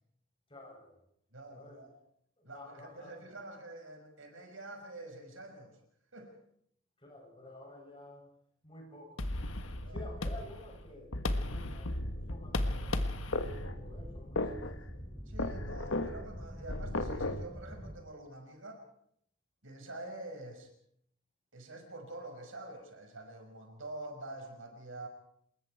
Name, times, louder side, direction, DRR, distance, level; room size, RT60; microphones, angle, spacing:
voice 1, 0.5-1.0 1.5-1.9 2.4-3.3 7.0-8.3 8.6-9.3 9.9-13.3 13.8-15.0, left 1 dB, 25° left, 1 dB, 7.5 m, -52 dB
voice 2, 1.3-1.9 2.4-5.8 6.1-6.3 9.8-10.0 15.3-18.8 19.6-20.7 21.5-25.1, right 2 dB, 80° right, 4 dB, 6.0 m, -47 dB
sound 1, 9.2-17.5, left 2 dB, 90° left, 1.5 m, -36 dB
sound 2, 11.7-18.0, equal, ahead, 2.3 m, -47 dB
28.0 x 21.0 x 4.7 m, 0.68 s
head